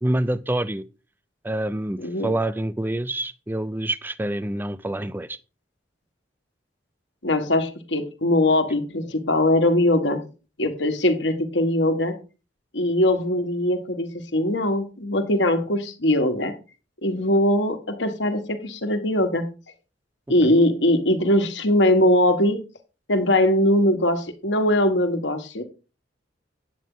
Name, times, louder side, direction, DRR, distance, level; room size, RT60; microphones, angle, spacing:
voice 1, 0.0-0.8 1.4-5.4 20.4-20.6, right 1 dB, 10° right, 0.5 m, -27 dB
voice 2, 2.0-2.3 7.2-10.2 10.6-12.2 12.7-16.5 17.0-19.5 20.3-22.6 23.1-25.6, left 1 dB, 70° left, 1.5 m, -21 dB
9.3 x 8.2 x 3.8 m
head